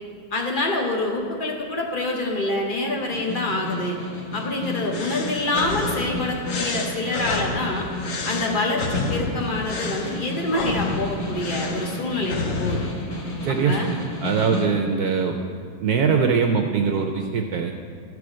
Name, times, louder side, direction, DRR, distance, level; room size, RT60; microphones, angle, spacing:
voice 1, 0.3-4.0 4.3-7.9 8.3-12.8 13.6-13.9, left 2 dB, 75° left, 0 dB, 0.4 m, -26 dB
Snare drum, 2.9-14.8, left 1 dB, 30° left, 1.8 m, -33 dB
sound 1, 4.9-12.9, left 4 dB, 60° left, 0.9 m, -30 dB
voice 2, 13.4-15.4 15.8-17.7, right 5 dB, 75° right, 4 dB, 0.9 m, -22 dB
14.5 x 4.8 x 6.2 m, 2.2 s
omnidirectional pair, 2.2 m